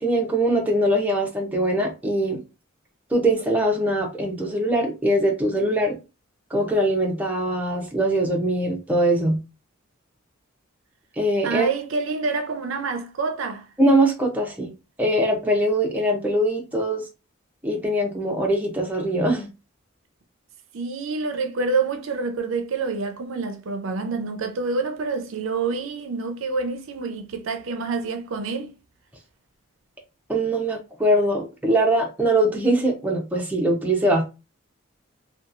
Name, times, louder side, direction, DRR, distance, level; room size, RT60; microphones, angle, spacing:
voice 1, 0.0-2.4 3.1-6.0 6.5-9.4 11.2-11.7 13.8-14.7 15.0-17.0 17.6-19.5 30.3-34.2, right 1 dB, 10° right, 0.6 m, -22 dB
voice 2, 11.4-13.7 20.7-28.7, right 4 dB, 70° right, 0.5 m, -27 dB
2.8 x 2.3 x 2.5 m
head